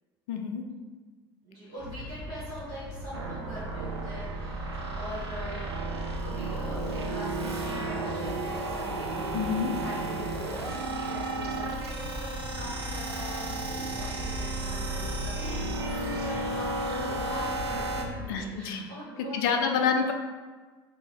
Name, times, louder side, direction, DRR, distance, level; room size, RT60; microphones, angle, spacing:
voice 1, 0.3-0.7 9.3-9.7 18.3-18.8 19.2-20.1, left 6 dB, 55° left, 5 dB, 0.4 m, -28 dB
voice 2, 1.4-5.7 6.2-19.8, equal, 55° right, -10 dB, 1.0 m, -42 dB
sound 1, 1.8-18.3, left 2 dB, 5° right, 0.6 m, -40 dB
sound 2, 3.1-18.0, right 3 dB, 80° right, 0.4 m, -33 dB
2.7 x 2.6 x 2.9 m, 1.4 s
figure-of-eight pair, 65°, 14 cm